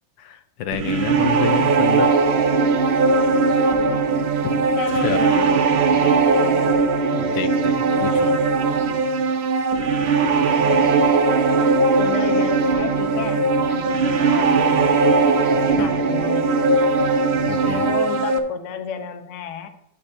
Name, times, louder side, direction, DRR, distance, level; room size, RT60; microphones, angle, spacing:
voice 1, 0.2-2.1 4.4-4.6 5.0-5.2 7.1-8.3 15.8-15.9 17.5-17.8, left 9 dB, 80° left, 9 dB, 1.4 m, -28 dB
sound 1, 0.7-18.4, right 4 dB, 55° right, 0.7 m, -19 dB
voice 2, 4.8-6.8 7.8-8.4 10.6-11.1 12.0-15.2 15.5-17.0 17.7-19.7, left 6 dB, 55° left, 7 dB, 1.0 m, -32 dB
12.0 x 8.7 x 2.6 m, 0.74 s
omnidirectional pair, 2.0 m